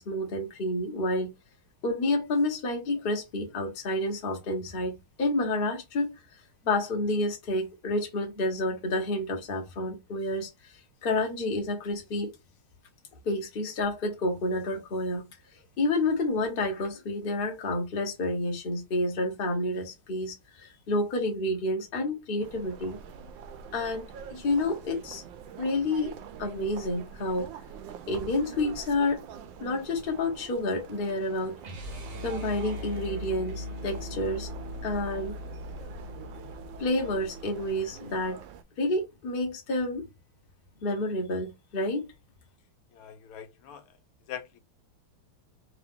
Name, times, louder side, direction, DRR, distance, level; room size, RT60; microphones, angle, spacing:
voice 1, 0.0-1.3 1.8-6.2 6.6-12.3 13.2-15.3 15.8-23.0 23.7-25.2 25.6-26.1 26.4-27.5 28.1-29.2 29.6-31.6 32.2-34.5 34.8-35.4 36.8-38.4 38.8-40.0 40.8-42.0, left 2 dB, 35° left, 0.9 m, -29 dB
sound 1, 22.4-38.6, right 6 dB, 75° right, 1.2 m, -45 dB
sound 2, 31.6-37.7, left 1 dB, 45° right, 0.7 m, -40 dB
voice 2, 42.9-44.0 44.3-44.6, left 9 dB, 90° left, 1.6 m, -42 dB
3.7 x 2.8 x 3.6 m
omnidirectional pair, 2.4 m